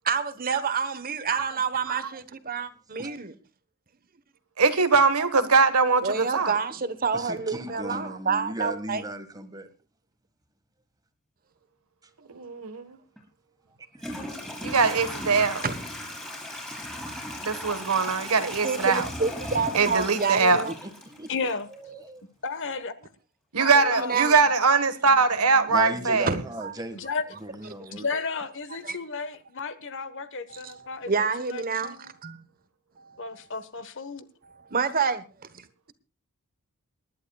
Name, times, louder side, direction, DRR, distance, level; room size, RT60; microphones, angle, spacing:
voice 1, 0.0-3.3 6.0-9.0 15.6-15.8 18.6-20.7 24.0-24.3 26.3-26.7 28.8-29.0 30.5-32.4 33.0-33.2 34.4-35.2, right 5 dB, 40° right, 1.2 m, -28 dB
voice 2, 4.6-6.6 12.3-12.8 14.6-15.6 17.4-19.1 19.7-20.6 23.5-26.3, right 4 dB, 85° right, 1.5 m, -22 dB
voice 3, 7.1-9.7 12.0-12.1 13.9-14.0 16.4-16.5 20.5-20.8 21.0-22.2 25.7-27.0 27.4-28.1, right 1 dB, 15° right, 1.8 m, -37 dB
Toilet flush / Trickle dribble, 13.2-13.3 13.9-21.7, left 1 dB, 5° left, 5.0 m, -37 dB
voice 4, 21.3-21.7 22.4-23.1 23.6-24.4 25.0-25.2 25.5-26.4 26.9-27.2 27.9-32.1 33.2-34.3, left 4 dB, 60° left, 1.3 m, -34 dB
28.0 x 11.5 x 2.4 m
head